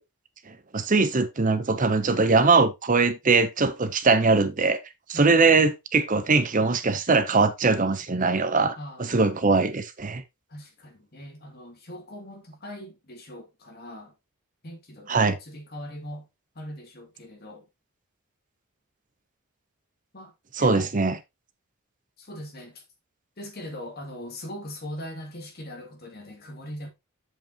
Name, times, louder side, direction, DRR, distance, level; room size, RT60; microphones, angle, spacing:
voice 1, 0.5-4.8 5.1-8.8 9.1-10.2 15.1-15.4 20.5-21.2, right 3 dB, 35° right, 0.7 m, -21 dB
voice 2, 5.1-5.5 8.7-9.3 10.5-14.1 14.6-16.3 16.5-17.7 20.1-20.3 20.6-20.9 22.2-22.8 23.4-26.9, left 1 dB, 45° left, 2.5 m, -40 dB
7.8 x 7.5 x 2.9 m
head